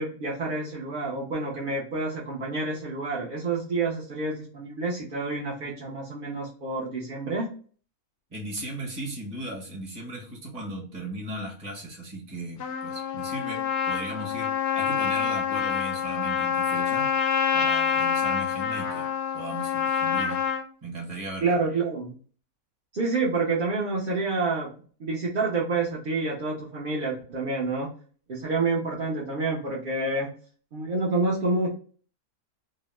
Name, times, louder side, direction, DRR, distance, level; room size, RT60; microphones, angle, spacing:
voice 1, 0.0-7.5 21.4-22.1 22.9-24.7 25.0-27.9 28.3-30.3 30.7-31.7, right 3 dB, 55° right, -4 dB, 0.6 m, -28 dB
voice 2, 8.3-17.1 17.5-19.0 19.3-20.5 20.8-21.5, right 1 dB, 30° right, -1 dB, 1.0 m, -37 dB
Trumpet, 12.6-20.6, left 7 dB, 65° left, 0.7 m, -26 dB
2.8 x 2.0 x 3.1 m, 0.42 s
omnidirectional pair, 1.5 m